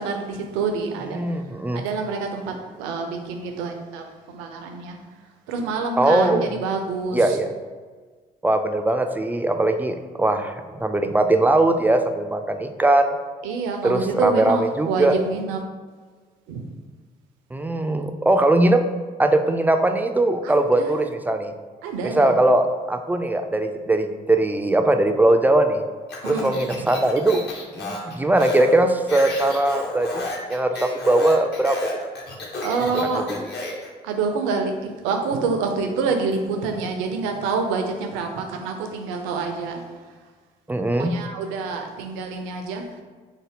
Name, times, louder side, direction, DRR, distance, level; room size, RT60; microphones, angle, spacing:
voice 1, 0.0-1.5 1.7-5.0 5.5-7.4 13.4-15.6 16.5-16.6 20.4-21.0 21.8-22.3 26.2-27.0 32.6-33.3 34.0-40.0 40.9-43.0, right 4 dB, 75° right, 4 dB, 0.5 m, -27 dB
voice 2, 1.1-1.8 6.0-6.5 7.1-7.5 8.4-13.1 13.8-15.1 17.5-18.8 19.2-21.5 22.1-25.8 26.3-27.4 27.7-31.8 40.7-41.1, right 2 dB, 10° right, 6 dB, 0.3 m, -20 dB
Speech, 26.1-33.9, left 2 dB, 55° left, 0.9 m, -32 dB
3.6 x 2.0 x 3.5 m, 1.5 s
hypercardioid pair, 45°, 20 cm